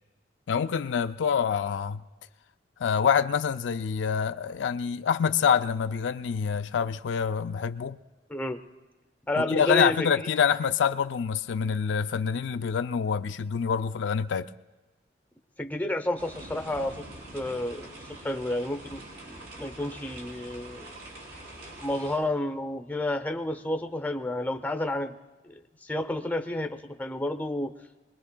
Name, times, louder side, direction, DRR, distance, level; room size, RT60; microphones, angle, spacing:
voice 1, 0.5-2.0 2.8-8.0 9.4-14.5, left 7 dB, 80° left, 0.4 m, -26 dB
voice 2, 8.3-8.6 9.3-10.0 15.6-17.1 17.3-20.9 21.8-25.2 25.4-27.7, left 1 dB, 10° left, 0.6 m, -31 dB
sound 1, 16.2-22.2, right 1 dB, 75° right, 5.3 m, -44 dB
25.0 x 20.5 x 2.2 m
head